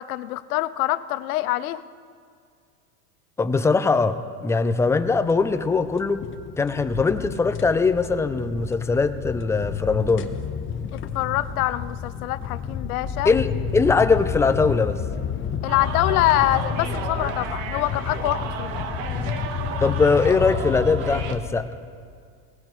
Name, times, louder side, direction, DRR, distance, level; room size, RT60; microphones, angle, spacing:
voice 1, 0.0-1.8 10.9-13.3 15.6-18.7, left 15 dB, 75° left, 14 dB, 0.8 m, -25 dB
voice 2, 3.4-6.2 6.6-10.3 13.2-15.0 19.8-21.7, left 4 dB, 5° left, 10 dB, 0.3 m, -21 dB
sound 1, 4.8-21.4, left 7 dB, 30° left, 0.9 m, -31 dB
sound 2, 15.7-21.3, right 6 dB, 65° right, 1.4 m, -33 dB
19.0 x 18.0 x 3.1 m, 2.2 s
hypercardioid pair, 105°, 43 cm